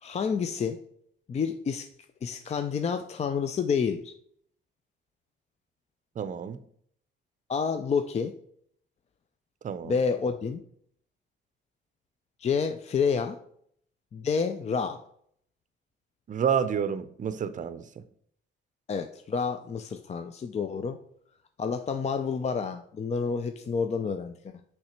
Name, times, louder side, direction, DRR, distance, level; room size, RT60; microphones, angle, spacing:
voice 1, 0.0-0.8 1.3-1.9 2.2-4.1 7.5-8.3 9.8-10.6 12.4-13.4 14.1-15.0 18.9-21.0 21.6-24.5, left 6 dB, 35° left, 0.4 m, -29 dB
voice 2, 6.2-6.6 9.6-10.0 16.3-18.0, right 7 dB, 40° right, 0.6 m, -29 dB
5.8 x 3.3 x 5.8 m
cardioid pair, 90°, 20 cm